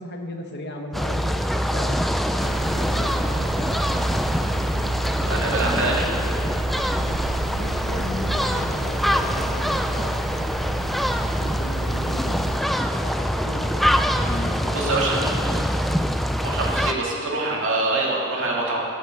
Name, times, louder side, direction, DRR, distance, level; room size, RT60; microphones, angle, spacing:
voice 1, 0.0-2.0 2.7-3.8 7.5-10.1 11.4-12.4 12.9-15.8 16.7-16.9, left 1 dB, 50° left, 3 dB, 1.1 m, -36 dB
sound 1, 0.9-16.9, equal, ahead, 0.3 m, -24 dB
sound 2, 2.4-12.6, right 5 dB, 85° right, 0.4 m, -36 dB
voice 2, 5.3-6.1 14.7-15.2 16.4-18.8, right 2 dB, 60° right, -3 dB, 2.3 m, -24 dB
11.0 x 8.3 x 7.7 m, 2.5 s
head